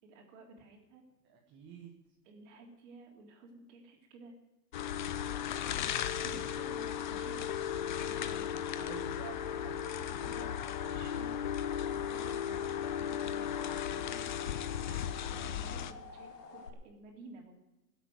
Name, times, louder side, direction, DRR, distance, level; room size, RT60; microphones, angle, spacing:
voice 1, 0.0-1.0 2.2-4.3 6.2-8.7 10.0-10.5 10.9-11.3 11.9-13.6 13.9-14.3 15.3-17.5, right 3 dB, 45° right, 0 dB, 3.8 m, -53 dB
voice 2, 1.2-1.9 8.7-10.1 10.4-11.2 15.8-16.0, right 7 dB, 20° right, 0 dB, 1.7 m, -50 dB
sound 1, 4.7-15.9, left 9 dB, 30° left, 0.5 m, -36 dB
sound 2, 10.2-16.7, left 4 dB, 65° left, 2.7 m, -50 dB
17.0 x 8.3 x 8.0 m, 0.98 s
hypercardioid pair, 145°, 50 cm